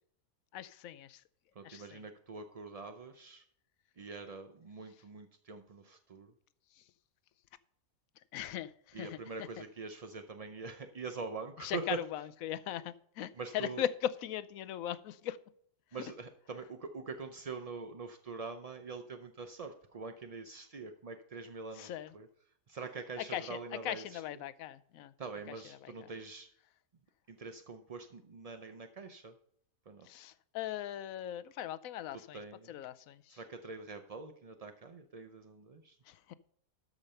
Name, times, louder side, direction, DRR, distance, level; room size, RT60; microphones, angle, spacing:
voice 1, 0.5-1.2 1.6-2.0 6.7-6.9 8.3-9.6 11.6-15.4 21.7-22.1 23.2-25.1 25.5-26.1 30.0-32.4 32.7-33.4 36.0-36.3, left 11 dB, 75° left, 16 dB, 1.0 m, -39 dB
voice 2, 1.6-3.4 4.0-6.3 8.9-12.0 13.4-13.8 15.9-22.3 22.7-24.2 25.2-26.5 27.3-29.3 29.9-30.1 32.3-32.7 33.3-36.0, right 4 dB, 50° right, 7 dB, 0.4 m, -44 dB
13.0 x 5.2 x 5.5 m, 0.64 s
omnidirectional pair, 1.5 m